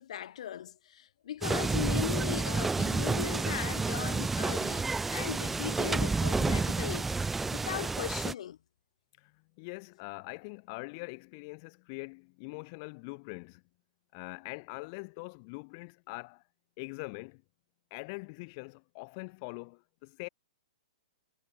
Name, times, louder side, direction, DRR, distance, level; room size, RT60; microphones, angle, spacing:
voice 1, 0.0-7.1 7.5-8.6, left 10 dB, 55° left, 2.1 m, -38 dB
sound 1, 1.4-8.3, right 3 dB, 5° right, 0.5 m, -30 dB
voice 2, 9.6-13.6 14.1-16.4 16.8-17.4 17.9-20.3, left 31 dB, 30° left, 1.6 m, -43 dB
hypercardioid pair, 170°, 4 cm